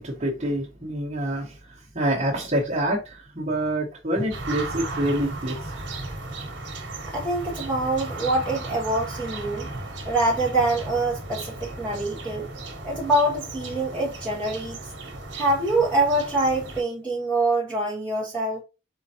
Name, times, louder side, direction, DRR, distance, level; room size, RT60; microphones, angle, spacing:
voice 1, 0.0-5.7, right 1 dB, 30° right, 1.0 m, -27 dB
sound 1, 4.3-16.8, right 2 dB, 55° right, 1.2 m, -35 dB
voice 2, 7.0-9.7 10.0-12.5 12.8-14.8 15.3-18.6, right 2 dB, 5° left, 0.9 m, -25 dB
4.3 x 3.8 x 2.8 m
head